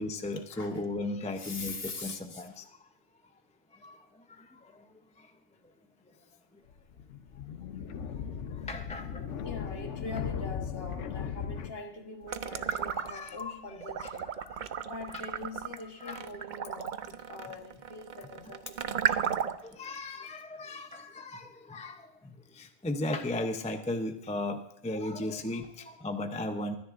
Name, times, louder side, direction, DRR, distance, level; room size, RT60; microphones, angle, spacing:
voice 1, 0.0-2.6 3.8-4.0 4.4-4.5 8.7-9.3 12.6-13.6 14.0-14.1 14.5-14.7 15.1-15.2 16.0-16.2 18.5-18.6 19.6-26.8, left 2 dB, 10° left, 6 dB, 0.5 m, -36 dB
voice 2, 1.3-2.6 9.4-14.3 14.8-19.4 25.4-25.5, left 3 dB, 55° left, 4 dB, 1.5 m, -43 dB
sound 1, 6.7-11.7, left 7 dB, 80° left, 1.1 m, -37 dB
sound 2, 12.3-13.4 13.8-19.7, right 8 dB, 55° right, 0.6 m, -34 dB
23.0 x 10.0 x 2.5 m, 0.82 s
omnidirectional pair, 1.2 m